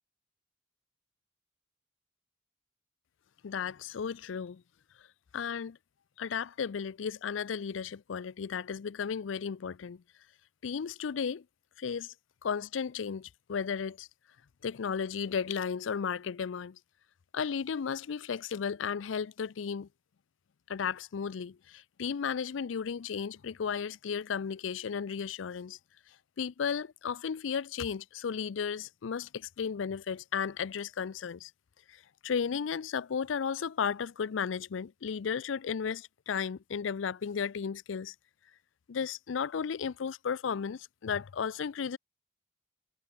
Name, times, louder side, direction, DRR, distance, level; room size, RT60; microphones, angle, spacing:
voice 1, 3.4-4.6 5.3-5.8 6.2-10.0 10.6-11.4 11.8-12.1 12.4-14.1 14.6-16.8 17.3-19.9 20.7-25.8 26.4-31.5 31.9-38.1 38.9-42.0, left 6 dB, 90° left, 0.5 m, -34 dB
head